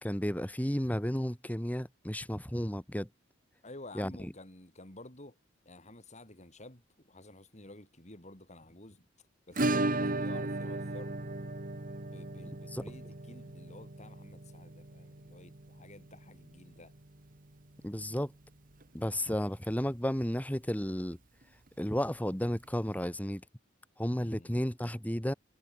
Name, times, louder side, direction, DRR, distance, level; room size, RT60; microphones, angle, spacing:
voice 1, 0.0-3.1 3.9-4.1 12.7-12.8 17.8-18.3 18.9-21.2 21.8-23.4 24.0-25.3, equal, 10° left, 2.2 m, -33 dB
voice 2, 3.6-5.4 5.7-9.1 9.5-11.2 12.1-16.9 18.0-18.2 24.3-24.6, left 2 dB, 35° left, 5.8 m, -51 dB
Acoustic guitar / Strum, 9.6-18.2 18.4-18.5 18.8-18.9 19.3-19.4 21.4-21.5 22.6-22.7, right 2 dB, 45° right, 1.6 m, -36 dB
head